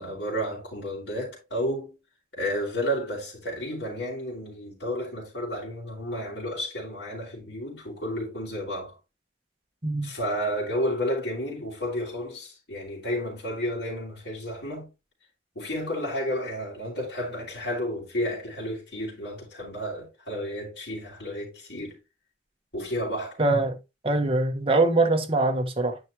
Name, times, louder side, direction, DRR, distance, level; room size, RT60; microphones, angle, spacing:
voice 1, 0.0-2.0 2.3-9.0 10.0-14.9 15.5-22.0 22.7-23.4, equal, 70° left, 4.8 m, -31 dB
voice 2, 23.4-23.8 24.0-26.0, right 2 dB, 30° right, 1.3 m, -23 dB
9.4 x 6.2 x 3.0 m
head